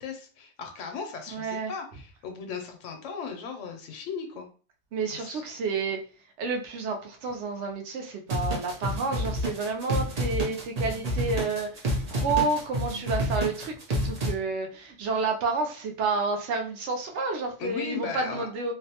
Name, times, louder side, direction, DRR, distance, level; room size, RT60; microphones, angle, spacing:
voice 1, 0.0-4.5 5.1-5.4 17.6-18.5, left 5 dB, 80° left, 5 dB, 0.9 m, -37 dB
voice 2, 1.3-1.7 4.9-6.1 6.4-18.7, right 4 dB, 70° right, 3 dB, 0.9 m, -30 dB
sound 1, 8.3-14.3, equal, 45° right, 0.5 m, -29 dB
2.6 x 2.1 x 2.8 m, 0.38 s
omnidirectional pair, 1.3 m